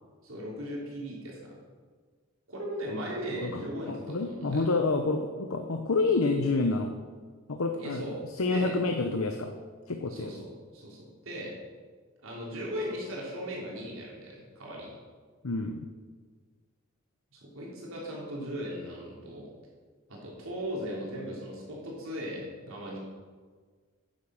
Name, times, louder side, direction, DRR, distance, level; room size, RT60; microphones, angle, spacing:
voice 1, 0.2-1.5 2.5-4.7 7.8-8.1 8.5-8.7 10.1-11.5 12.2-14.9 17.3-19.5 20.1-23.0, equal, 85° right, -4 dB, 3.5 m, -38 dB
voice 2, 3.9-6.9 7.5-9.5 9.9-10.3 15.4-15.9, left 3 dB, 90° left, 5 dB, 0.8 m, -28 dB
9.5 x 8.7 x 6.4 m, 1.5 s
head